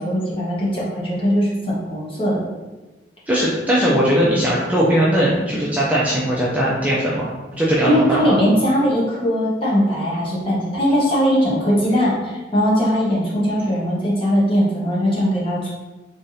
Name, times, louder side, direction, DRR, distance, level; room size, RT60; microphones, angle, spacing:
voice 1, 0.0-2.4 7.8-15.7, equal, 30° left, -6 dB, 1.0 m, -20 dB
voice 2, 3.3-7.3 7.6-8.4, equal, 10° right, -7 dB, 0.5 m, -19 dB
3.7 x 3.4 x 2.7 m, 1.2 s
head